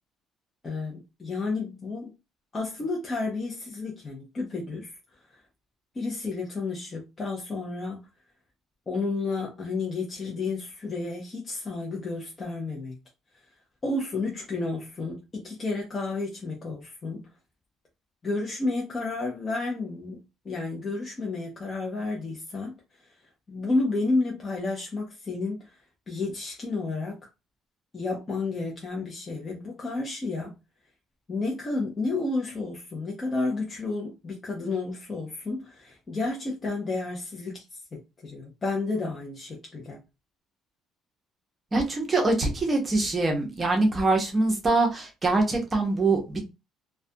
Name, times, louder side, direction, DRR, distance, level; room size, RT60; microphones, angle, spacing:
voice 1, 0.6-2.1 2.5-5.0 5.3-5.4 6.0-8.1 8.9-13.0 13.8-17.3 18.2-22.7 23.5-25.7 26.1-27.2 27.9-30.5 31.3-37.6 37.9-40.0, left 3 dB, 20° left, 0.5 m, -31 dB
voice 2, 41.7-46.4, right 2 dB, 15° right, 0.7 m, -24 dB
2.3 x 2.1 x 2.6 m
cardioid pair, 175°, 0 cm